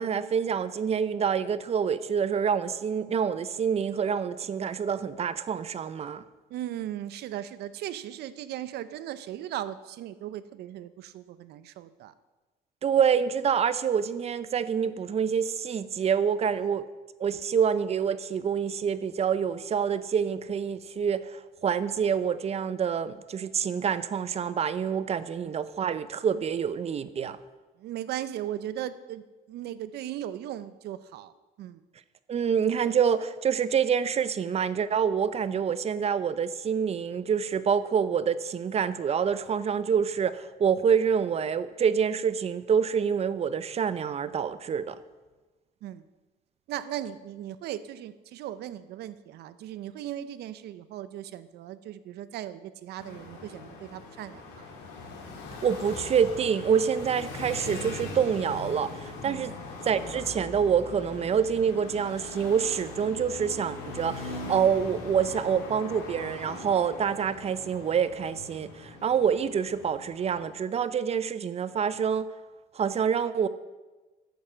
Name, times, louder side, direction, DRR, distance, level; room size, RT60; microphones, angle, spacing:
voice 1, 0.0-6.2 12.8-16.8 17.2-27.4 32.3-45.0 55.6-59.5 59.8-72.3 72.7-73.5, right 7 dB, 40° right, 15 dB, 0.6 m, -27 dB
voice 2, 6.5-12.1 25.4-25.5 27.8-31.3 31.6-31.8 45.8-46.1 46.7-54.7 59.2-59.6, right 12 dB, 75° right, 14 dB, 0.7 m, -37 dB
sound 1, 53.0-70.5, left 3 dB, 85° left, 2.9 m, -41 dB
10.5 x 7.2 x 7.5 m, 1.2 s
cardioid pair, 110°, 17 cm